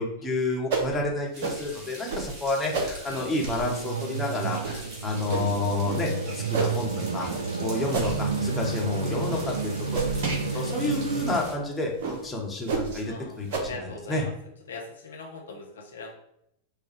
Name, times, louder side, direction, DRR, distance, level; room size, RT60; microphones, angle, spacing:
voice 1, 0.0-7.3 7.6-10.0 10.5-13.7 14.1-14.2, left 2 dB, 10° left, -2 dB, 1.1 m, -30 dB
sound 1, 0.7-0.9 1.4-1.6 2.1-2.3 2.7-2.9 3.4-3.6 4.1-4.2 4.6-4.8 5.3-5.5 5.8-6.0 6.5-6.8 7.3-7.5 7.9-8.2 8.6-8.8 9.3-9.4 9.9-10.4 10.9-11.0 11.4-11.5 12.0-12.2 12.7-13.0 13.5-13.6, right 4 dB, 55° right, 0.8 m, -29 dB
sound 2, 1.3-11.5, right 1 dB, 35° right, 1.5 m, -44 dB
sound 3, 3.0-11.4, right 4 dB, 75° right, 0.3 m, -31 dB
voice 2, 10.4-10.9 13.0-14.3 14.7-16.3, left 3 dB, 70° left, 1 dB, 0.6 m, -41 dB
4.8 x 2.3 x 4.5 m, 0.78 s
figure-of-eight pair, 90°, 0 cm